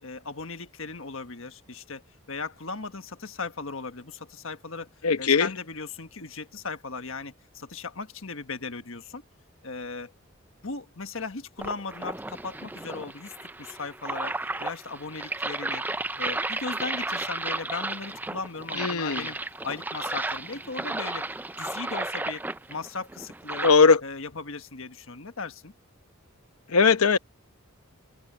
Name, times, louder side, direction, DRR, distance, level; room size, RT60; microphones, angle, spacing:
voice 1, 0.0-4.9 5.2-9.2 9.6-10.1 10.6-15.8 16.2-19.4 19.6-21.3 21.6-22.4 22.7-23.7 24.0-25.7, left 4 dB, 65° left, 1.5 m, -37 dB
voice 2, 5.0-5.5 18.8-19.3 23.6-24.0 26.7-27.2, left 5 dB, 80° left, 0.9 m, -19 dB
sound 1, 11.6-23.7, right 2 dB, 10° right, 0.3 m, -33 dB
head